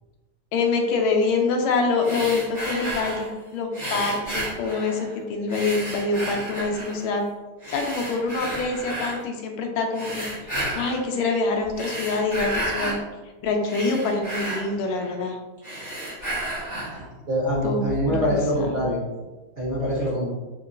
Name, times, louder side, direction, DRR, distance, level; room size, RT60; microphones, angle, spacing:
voice 1, 0.5-7.3 7.7-10.3 10.7-13.0 13.4-15.4 17.6-18.8, left 3 dB, 85° left, 2 dB, 1.4 m, -25 dB
sound 1, 2.0-3.3 3.7-5.1 5.5-7.0 7.6-9.2 9.9-11.1 11.6-13.0 13.4-15.3 15.6-17.0, right 1 dB, 15° left, 0.8 m, -32 dB
voice 2, 17.3-19.0 19.6-20.3, equal, 50° right, -10 dB, 0.7 m, -24 dB
3.6 x 2.9 x 2.5 m, 1.2 s
omnidirectional pair, 2.2 m